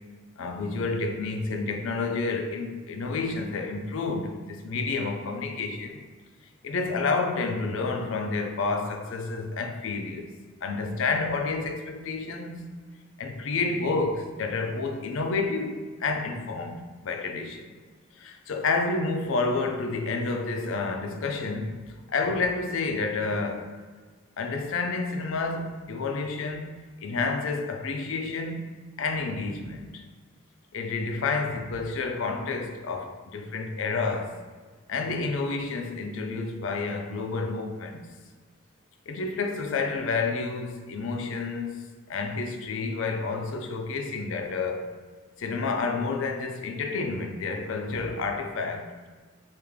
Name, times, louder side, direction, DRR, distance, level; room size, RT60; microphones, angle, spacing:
voice 1, 0.4-6.0 6.6-10.3 10.6-12.7 13.2-17.8 18.2-23.7 24.4-30.0 30.7-34.4 34.9-38.1 39.1-44.9 45.4-48.9, left 3 dB, 70° left, 0.4 m, -30 dB
3.2 x 2.5 x 3.5 m
head